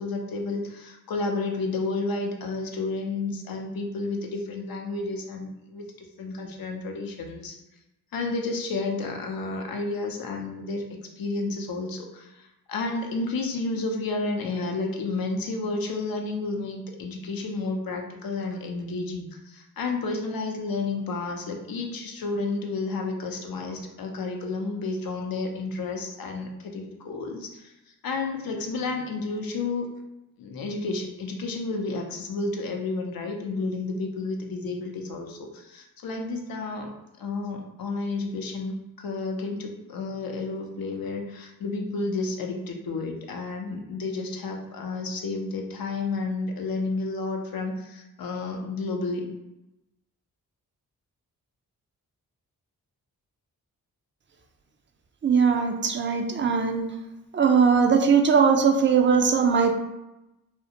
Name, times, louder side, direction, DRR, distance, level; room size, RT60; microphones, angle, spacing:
voice 1, 0.0-7.6 8.1-10.8 11.2-29.9 30.4-36.9 37.2-49.3, left 3 dB, 65° left, 2 dB, 0.6 m, -31 dB
voice 2, 55.2-56.9 57.3-59.7, right 6 dB, 30° right, 4 dB, 0.4 m, -20 dB
2.4 x 2.1 x 2.8 m, 0.95 s
supercardioid pair, 40°, 38 cm